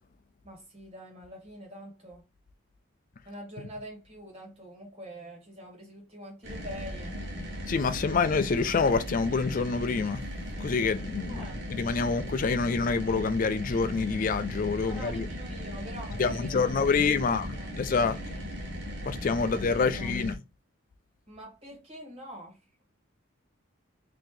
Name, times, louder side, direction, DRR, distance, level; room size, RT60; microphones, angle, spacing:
voice 1, 0.4-2.2 3.2-7.2 11.3-11.6 14.8-17.3 17.6-17.7 18.1-18.4 19.4-19.5 19.8-20.1 21.3-22.8, equal, 30° right, 1.8 m, -45 dB
sound 1, 6.4-20.3, equal, 55° right, 1.0 m, -37 dB
voice 2, 7.7-10.2 10.6-11.5 11.8-15.3 16.2-18.4 19.1-20.4, left 4 dB, 40° left, 0.4 m, -27 dB
4.1 x 2.8 x 3.1 m
head